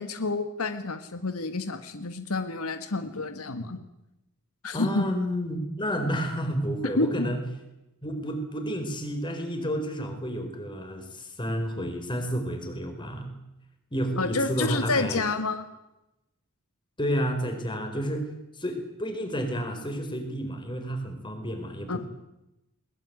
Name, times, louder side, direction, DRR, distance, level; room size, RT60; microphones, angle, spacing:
voice 1, 0.0-3.8 4.6-5.1 7.0-7.3 14.2-15.6 21.9-22.0, left 3 dB, 80° left, 9 dB, 1.6 m, -29 dB
voice 2, 4.7-7.4 8.0-13.3 13.9-15.2 17.0-18.3 18.6-22.0, equal, 20° left, 6 dB, 4.5 m, -30 dB
21.5 x 20.0 x 9.5 m, 0.93 s
head